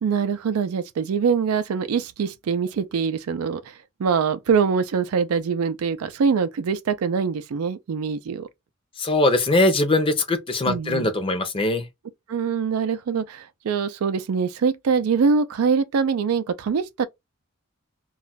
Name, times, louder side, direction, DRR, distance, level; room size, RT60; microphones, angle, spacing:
voice 1, 0.0-8.5 10.7-11.1 12.3-17.1, right 6 dB, 85° right, 0.4 m, -24 dB
voice 2, 9.0-11.9, left 2 dB, 25° left, 0.5 m, -21 dB
2.3 x 2.1 x 3.9 m
head